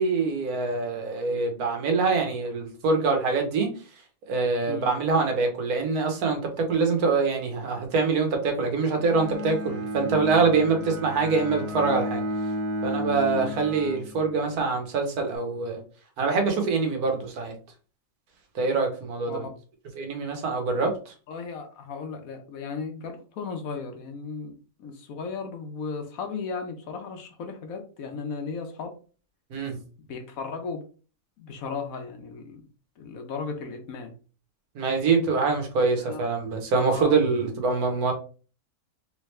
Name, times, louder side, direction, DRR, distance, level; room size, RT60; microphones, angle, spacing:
voice 1, 0.0-3.7 4.3-12.2 12.8-15.8 16.2-17.5 18.5-19.4 20.0-20.9 29.5-29.8 34.8-38.1, right 4 dB, 70° right, 4 dB, 1.4 m, -24 dB
Bowed string instrument, 8.9-14.7, equal, 45° right, 1.3 m, -32 dB
voice 2, 21.3-29.0 30.1-30.8 31.4-32.7 33.0-34.1 36.0-36.3 36.8-37.1, left 5 dB, 65° left, 5 dB, 1.1 m, -36 dB
3.5 x 3.1 x 3.2 m, 0.37 s
omnidirectional pair, 1.7 m